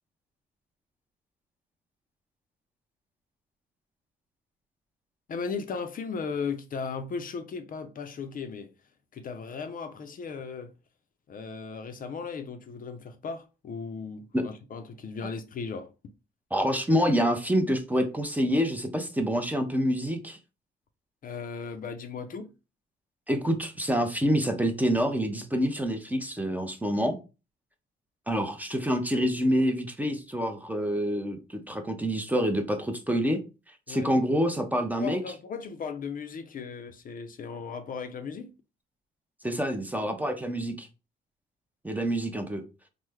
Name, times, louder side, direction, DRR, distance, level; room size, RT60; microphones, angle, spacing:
voice 1, 5.3-8.7 9.1-10.7 11.3-15.9 21.2-22.5 33.9-34.1 35.0-38.5, left 5 dB, 45° left, 0.5 m, -36 dB
voice 2, 16.5-20.4 23.3-27.2 28.3-33.4 33.9-35.2 39.4-40.9 41.8-42.6, equal, 10° right, 0.5 m, -27 dB
3.1 x 2.1 x 3.4 m
cardioid pair, 90°, 20 cm